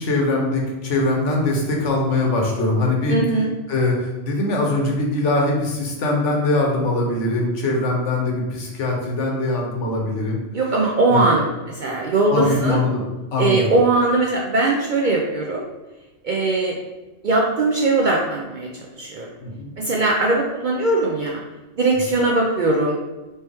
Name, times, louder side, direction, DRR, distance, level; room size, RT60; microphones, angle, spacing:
voice 1, 0.0-3.2 3.7-10.4 11.1-11.4 12.3-13.0 13.3-13.7 19.4-19.7, left 2 dB, 75° left, 0 dB, 1.2 m, -22 dB
voice 2, 3.1-3.5 10.5-11.5 11.8-12.8 13.4-15.7 16.2-16.7 17.2-18.7 19.0-19.3 19.8-21.4 21.8-23.0, right 2 dB, 60° right, -1 dB, 0.5 m, -20 dB
4.4 x 2.9 x 3.4 m, 1.1 s
omnidirectional pair, 1.3 m